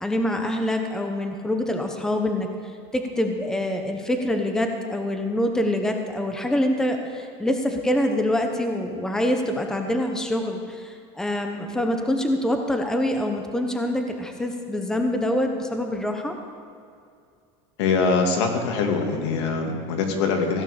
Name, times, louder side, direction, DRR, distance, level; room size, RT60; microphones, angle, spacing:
voice 1, 0.0-2.5 2.9-16.3, left 1 dB, 5° left, 4 dB, 1.0 m, -25 dB
voice 2, 17.8-20.6, left 4 dB, 90° left, 3 dB, 2.2 m, -23 dB
16.5 x 9.5 x 6.7 m, 2.3 s
cardioid pair, 155°, 14 cm